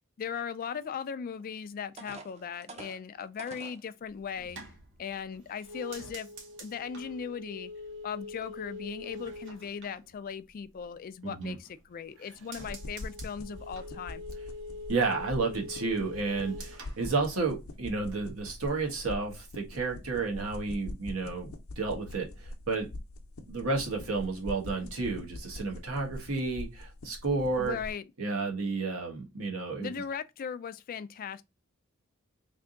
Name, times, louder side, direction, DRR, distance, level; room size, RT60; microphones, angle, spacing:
voice 1, 0.2-4.6 5.0-6.3 6.6-7.7 8.0-14.2 27.6-28.0 29.8-31.4, left 7 dB, 40° left, 0.3 m, -38 dB
sound 1, 1.4-1.5 2.0-3.8 4.5-4.6 5.1-5.3, right 2 dB, 30° right, 0.7 m, -47 dB
sound 2, 4.0-10.8 11.2-11.9 12.2-17.9 18.2-18.7, left 2 dB, 60° right, 1.0 m, -44 dB
voice 2, 11.2-11.6 14.9-21.5 21.8-22.9 23.5-27.8 28.2-29.9, right 3 dB, 80° right, 1.2 m, -31 dB
sound 3, 12.6-27.9, left 1 dB, 80° left, 0.7 m, -44 dB
3.3 x 2.7 x 3.7 m
head